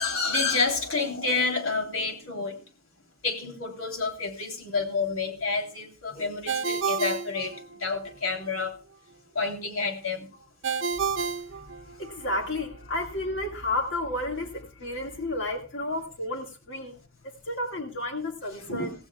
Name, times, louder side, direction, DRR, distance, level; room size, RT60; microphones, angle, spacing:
voice 1, 0.0-2.6 3.2-8.8 9.3-10.4 11.0-11.1 18.6-18.9, left 4 dB, 90° left, 4 dB, 3.1 m, -29 dB
Ringtone, 6.5-8.1 10.6-12.3, right 5 dB, 65° right, 0.7 m, -30 dB
voice 2, 12.0-17.0 17.5-18.9, left 1 dB, 60° left, 3 dB, 1.9 m, -31 dB
16.0 x 16.0 x 2.3 m, 0.35 s
head